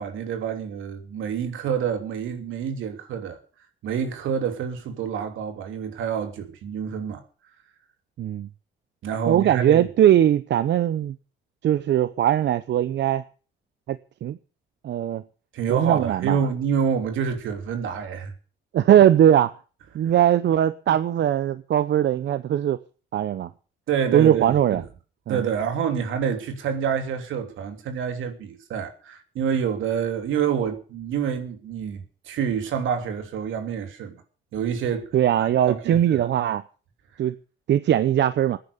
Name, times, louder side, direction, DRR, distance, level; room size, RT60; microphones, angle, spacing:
voice 1, 0.0-3.4 3.8-7.2 9.0-9.9 15.5-18.3 20.0-20.1 23.9-24.5 25.3-34.1 34.5-35.1 35.6-36.3, right 7 dB, 80° right, 3.1 m, -27 dB
voice 2, 8.2-8.5 9.3-11.1 11.6-13.2 13.9-14.4 14.8-15.2 15.7-16.4 18.7-19.5 19.9-22.8 23.1-23.5 24.1-24.8 25.3-25.4 35.1-36.6 37.2-37.3 37.7-38.6, right 11 dB, 65° right, 0.7 m, -20 dB
18.5 x 10.0 x 6.7 m
cardioid pair, 90°, 20 cm